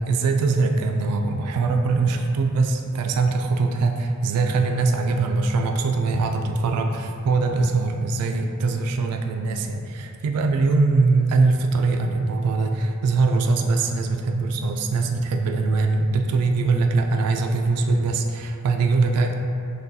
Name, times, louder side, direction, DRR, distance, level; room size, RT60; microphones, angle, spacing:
voice 1, 0.0-19.3, right 3 dB, 85° right, 8 dB, 0.3 m, -22 dB
6.2 x 2.2 x 2.6 m, 2.5 s
head